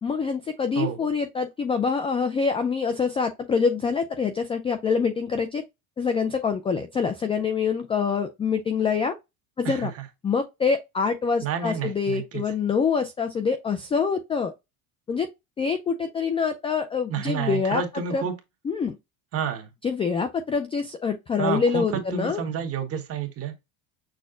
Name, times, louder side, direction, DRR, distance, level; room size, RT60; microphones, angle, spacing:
voice 1, 0.0-5.6 6.0-9.2 9.6-9.9 10.2-14.5 15.1-15.3 15.6-17.8 18.1-18.2 18.6-19.0 19.8-22.4, left 5 dB, 15° left, 0.3 m, -25 dB
voice 2, 11.4-12.4 17.1-18.3 19.3-19.7 21.4-23.5, right 7 dB, 35° right, 1.5 m, -29 dB
6.4 x 2.2 x 3.8 m
cardioid pair, 145°, 42 cm